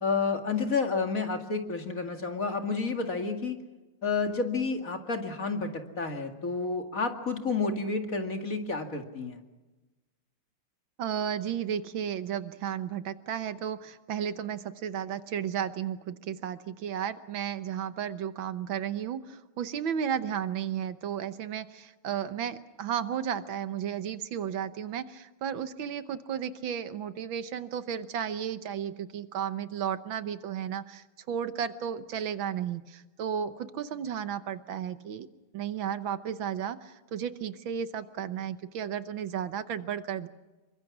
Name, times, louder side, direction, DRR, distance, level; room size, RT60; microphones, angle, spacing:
voice 1, 0.0-3.6 4.0-9.4, left 4 dB, 40° left, 5 dB, 2.5 m, -30 dB
voice 2, 11.0-35.3 35.5-40.3, right 9 dB, 70° right, 12 dB, 1.7 m, -33 dB
27.5 x 23.5 x 6.1 m, 1.1 s
omnidirectional pair, 2.3 m